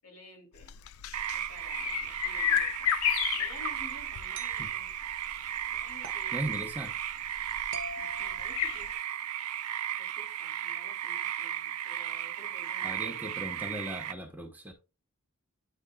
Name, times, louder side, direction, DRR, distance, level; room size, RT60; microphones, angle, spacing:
voice 1, 0.0-0.8 1.3-2.9 3.3-4.9 5.7-6.6 8.0-9.0 9.9-13.1, left 1 dB, 90° left, 2.9 m, -53 dB
sound 1, 0.6-8.9, left 12 dB, 70° left, 0.4 m, -33 dB
sound 2, 1.1-14.1, right 11 dB, 90° right, 0.5 m, -35 dB
sound 3, 2.6-2.8 4.3-4.7 6.0-6.3 7.7-9.1, right 1 dB, 55° right, 1.1 m, -45 dB
voice 2, 6.3-6.9 12.8-14.7, right 1 dB, 10° right, 1.0 m, -38 dB
10.0 x 4.5 x 2.3 m
head